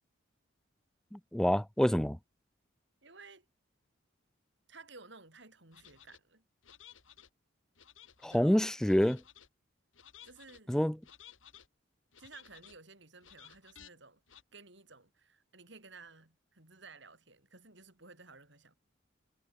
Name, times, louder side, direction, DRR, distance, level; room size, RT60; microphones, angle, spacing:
voice 1, 1.1-2.2 8.2-9.2 10.7-11.0, equal, 5° left, 0.3 m, -27 dB
voice 2, 3.0-3.4 4.7-6.4 8.2-8.5 10.2-10.7 12.2-18.7, right 3 dB, 60° right, 6.7 m, -55 dB
sound 1, 5.7-6.2 6.6-7.3 7.8-8.4 8.8-9.5 9.9-10.6 11.0-11.7 12.1-12.8 13.2-13.9 14.3-14.4, left 10 dB, 80° left, 2.9 m, -56 dB
head